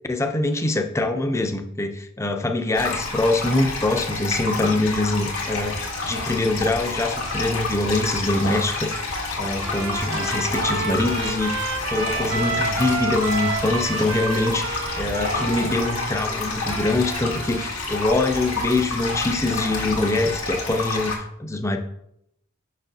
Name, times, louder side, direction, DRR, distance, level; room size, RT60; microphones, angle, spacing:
voice 1, 0.1-9.0 9.4-21.8, left 2 dB, 15° left, 5 dB, 0.5 m, -24 dB
sound 1, 2.7-21.2, left 3 dB, 85° left, 1.6 m, -29 dB
sound 2, 5.6-20.4, equal, 85° right, 2.0 m, -41 dB
Trumpet, 9.6-17.7, right 4 dB, 60° right, 0.7 m, -30 dB
6.1 x 5.9 x 2.7 m, 0.77 s
head